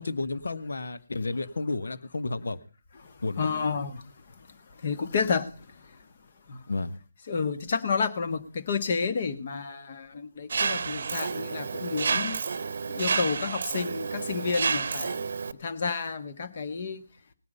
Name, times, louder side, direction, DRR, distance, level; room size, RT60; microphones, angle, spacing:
voice 1, 0.0-2.6 3.2-3.5 6.7-7.0, left 3 dB, 70° left, 12 dB, 1.3 m, -31 dB
voice 2, 3.4-4.0 4.8-5.5 6.5-6.6 7.3-12.4 12.9-15.2 15.6-17.0, left 5 dB, 45° left, 10 dB, 1.7 m, -30 dB
Mechanisms, 10.5-15.5, right 5 dB, 55° right, 0.8 m, -30 dB
18.5 x 9.5 x 5.5 m, 0.38 s
figure-of-eight pair, 155°, 0 cm